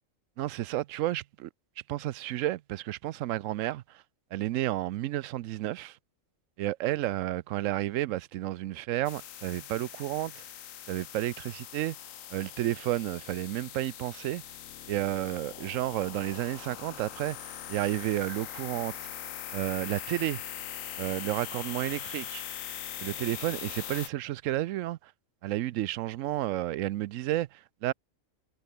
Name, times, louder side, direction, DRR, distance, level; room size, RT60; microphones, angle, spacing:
voice 1, 0.4-1.5 1.9-4.0 4.3-6.0 6.6-10.4 10.9-12.0 12.3-14.4 14.9-19.1 19.5-20.4 21.0-22.4 23.0-25.1 25.4-27.9, right 14 dB, 80° right, 0.9 m, -31 dB
sound 1, 9.0-24.1, left 10 dB, 85° left, 1.3 m, -41 dB
omnidirectional pair, 1.3 m